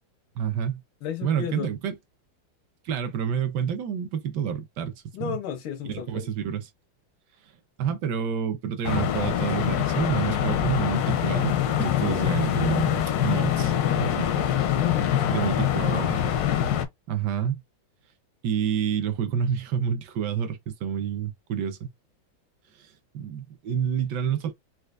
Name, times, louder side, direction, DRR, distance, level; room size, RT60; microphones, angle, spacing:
voice 1, 0.4-0.8 1.2-2.0 2.8-5.4 5.8-6.7 7.8-14.3 15.3-16.2 17.1-17.6 18.4-21.9 22.8-24.5, right 8 dB, 70° right, 1.1 m, -29 dB
voice 2, 1.0-1.7 5.1-6.3 14.7-15.9, left 9 dB, 90° left, 1.6 m, -34 dB
sound 1, 8.8-16.9, left 10 dB, 75° left, 0.9 m, -24 dB
4.3 x 2.3 x 2.3 m
omnidirectional pair, 2.2 m